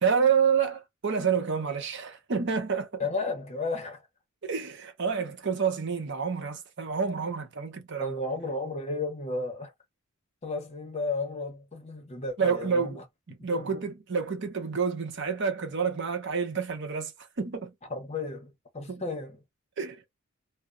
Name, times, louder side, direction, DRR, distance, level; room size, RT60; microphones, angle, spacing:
voice 1, 0.0-3.0 4.4-8.1 12.4-13.0 13.3-17.7 18.9-19.0 19.8-20.0, right 6 dB, 55° right, 0.7 m, -28 dB
voice 2, 3.0-4.0 8.0-9.7 10.4-13.0 13.5-13.7 17.9-19.4, left 3 dB, 30° left, 0.8 m, -33 dB
2.8 x 2.0 x 2.4 m
head